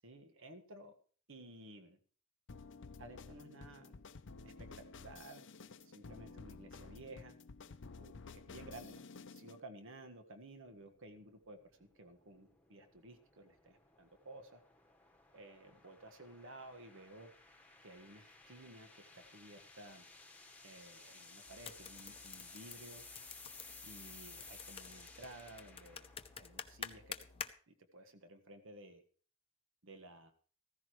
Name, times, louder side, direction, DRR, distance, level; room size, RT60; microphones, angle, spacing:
voice 1, 0.0-0.9 1.3-2.0 3.0-4.0 4.4-5.4 5.7-7.4 8.0-9.0 9.3-14.6 15.3-17.3 17.8-20.1 20.6-23.0 23.8-26.1 26.3-29.0 29.8-30.3, right 1 dB, 65° right, 7 dB, 1.7 m, -55 dB
sound 1, 2.5-9.6, left 4 dB, 60° left, 0.7 m, -52 dB
sound 2, 10.7-26.9, left 3 dB, 5° left, 1.4 m, -57 dB
sound 3, 21.5-27.5, left 6 dB, 25° left, 0.7 m, -50 dB
15.0 x 15.0 x 3.2 m, 0.43 s
head